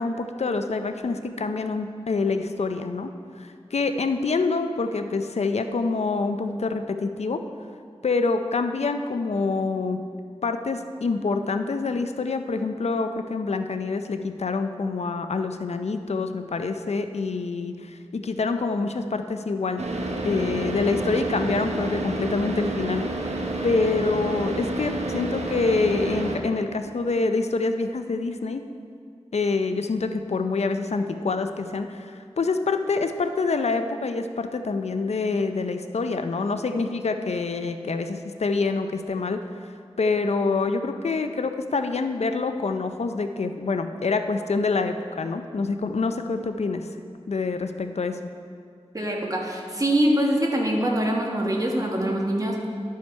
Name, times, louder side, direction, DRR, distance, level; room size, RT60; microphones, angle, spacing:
voice 1, 0.0-3.1 3.4-7.4 8.0-10.0 10.4-19.8 20.3-23.0 23.6-28.6 29.3-39.4 40.0-46.8 47.3-48.2, left 3 dB, 70° left, 7 dB, 0.5 m, -26 dB
Car / Idling, 19.8-26.4, right 2 dB, 75° right, 1.0 m, -29 dB
voice 2, 48.9-52.7, right 1 dB, 30° right, -1 dB, 1.6 m, -24 dB
11.5 x 5.6 x 4.5 m, 2.2 s
wide cardioid pair, 50°, 11 cm